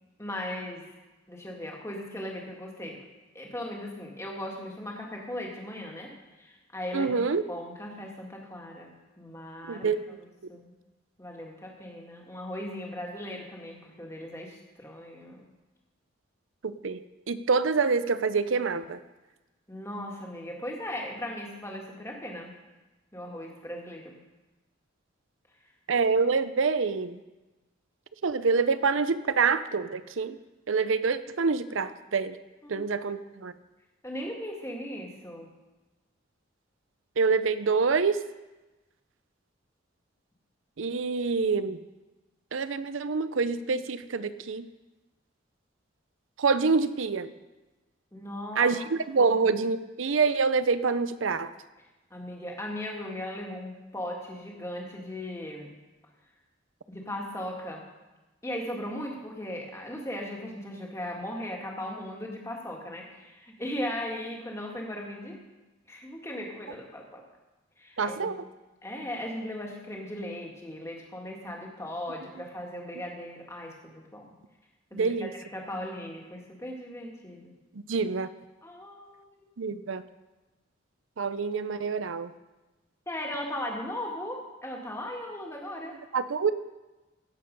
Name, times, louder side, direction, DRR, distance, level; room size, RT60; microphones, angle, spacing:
voice 1, 0.2-0.9 1.3-3.0 3.3-7.1 7.5-8.9 9.2-10.2 10.5-10.7 11.2-15.4 19.7-22.5 23.1-24.2 32.6-32.8 34.0-35.5 48.1-48.7 49.2-49.5 52.1-55.7 56.9-57.8 58.4-65.4 65.9-67.2 67.8-68.3 68.8-74.3 74.9-75.1 75.5-77.5 78.6-79.5 83.1-86.0, left 1 dB, 15° left, -1 dB, 1.9 m, -38 dB
voice 2, 6.9-7.4 9.7-10.2 16.6-19.0 25.9-27.2 28.2-30.4 30.7-32.4 32.7-33.5 37.2-38.2 40.8-41.8 42.5-44.7 46.4-47.3 48.6-51.5 68.0-68.3 74.9-75.3 77.7-78.3 79.6-80.0 81.2-82.3 86.1-86.5, right 4 dB, 80° right, 13 dB, 0.6 m, -26 dB
16.5 x 7.7 x 5.4 m, 1.1 s
head